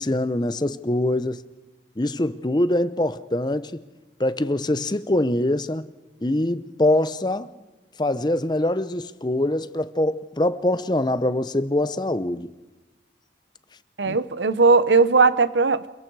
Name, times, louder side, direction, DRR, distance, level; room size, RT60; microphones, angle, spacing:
voice 1, 0.0-1.4 2.0-3.8 4.2-5.9 6.2-7.5 8.0-12.5 14.1-14.2, left 1 dB, 25° left, 0.7 m, -23 dB
voice 2, 14.0-15.9, right 4 dB, 90° right, 1.0 m, -18 dB
28.0 x 22.5 x 4.8 m
head